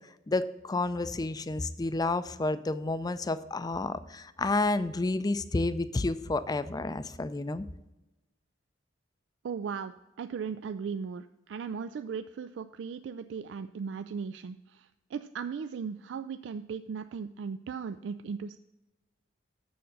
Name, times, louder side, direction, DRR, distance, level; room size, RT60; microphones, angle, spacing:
voice 1, 0.3-7.7, left 2 dB, 20° left, 13 dB, 0.4 m, -30 dB
voice 2, 9.4-9.9 10.2-18.6, right 6 dB, 70° right, 11 dB, 0.3 m, -37 dB
7.0 x 6.3 x 7.4 m, 0.98 s
head